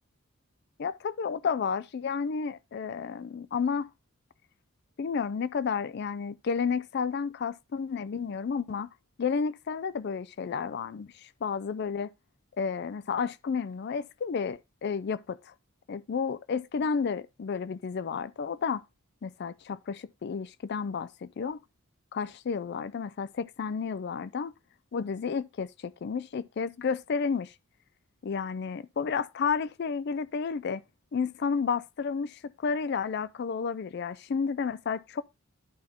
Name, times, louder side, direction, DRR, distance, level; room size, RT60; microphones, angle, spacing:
voice 1, 0.8-3.9 5.0-8.9 9.2-12.1 12.6-15.4 15.9-18.8 19.2-21.6 22.1-24.5 24.9-27.5 28.2-30.8 31.1-35.2, left 5 dB, 55° left, 0.4 m, -31 dB
11.0 x 4.3 x 3.5 m
head